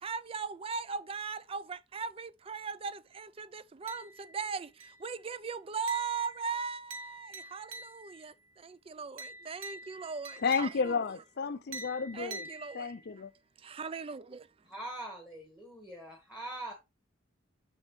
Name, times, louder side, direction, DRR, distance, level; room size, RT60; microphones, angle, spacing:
voice 1, 0.0-11.1 12.1-13.2 13.6-14.5, right 5 dB, 25° right, 0.4 m, -39 dB
sound 1, 3.9-4.4 4.8-5.2 5.9-8.3 9.2-11.1 11.7-13.1, right 2 dB, 80° right, 1.3 m, -46 dB
voice 2, 10.4-12.5 12.7-13.3, left 5 dB, 50° left, 0.5 m, -32 dB
voice 3, 14.6-16.7, right 1 dB, 5° right, 1.5 m, -43 dB
7.3 x 6.2 x 3.2 m
head